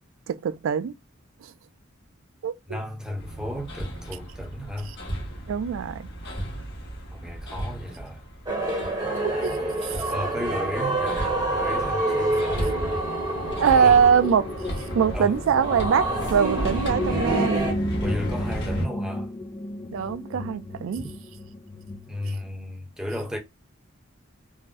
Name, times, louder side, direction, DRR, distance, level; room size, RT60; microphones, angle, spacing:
voice 1, 0.3-0.9 1.4-1.5 2.4-2.8 5.5-6.1 9.2-9.5 9.8-10.1 12.1-12.2 13.6-14.5 14.9-17.7 19.9-21.0, right 7 dB, 80° right, 0.3 m, -23 dB
voice 2, 2.7-4.9 7.1-8.2 10.1-12.7 13.7-14.0 15.1-15.4 18.0-19.3 22.1-23.4, left 1 dB, 5° right, 0.8 m, -34 dB
Hammer, 3.2-18.8, equal, 60° left, 1.1 m, -34 dB
sound 1, 8.5-17.7, right 2 dB, 20° right, 0.9 m, -28 dB
sound 2, 13.0-22.5, left 1 dB, 20° left, 0.3 m, -34 dB
3.7 x 2.0 x 2.4 m
head